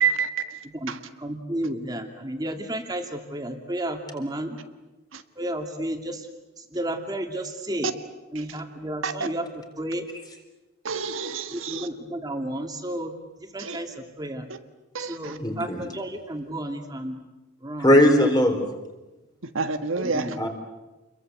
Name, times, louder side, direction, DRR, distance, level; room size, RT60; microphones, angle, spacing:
voice 1, 0.0-0.9 9.0-9.1 10.8-11.9 13.6-13.8 14.9-15.3 19.5-20.3, right 5 dB, 80° right, 8 dB, 1.6 m, -28 dB
voice 2, 0.7-4.6 5.4-6.3 6.6-7.9 8.3-10.0 11.5-13.1 13.4-14.5 15.0-17.2 17.6-17.9 19.9-20.4, right 1 dB, 20° right, 4 dB, 2.5 m, -32 dB
voice 3, 15.4-15.8 17.8-18.6 20.4-20.5, left 1 dB, 20° left, 4 dB, 4.0 m, -18 dB
29.0 x 22.5 x 8.2 m, 1.1 s
head